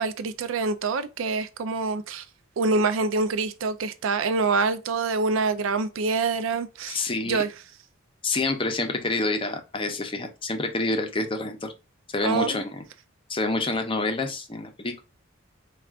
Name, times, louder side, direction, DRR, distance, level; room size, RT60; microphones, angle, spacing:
voice 1, 0.0-2.2 2.6-7.5 12.2-12.6, right 4 dB, 70° right, 0.4 m, -26 dB
voice 2, 6.9-7.4 8.2-11.7 12.1-12.8 13.3-15.0, left 2 dB, 25° left, 0.6 m, -27 dB
4.5 x 2.3 x 2.3 m
head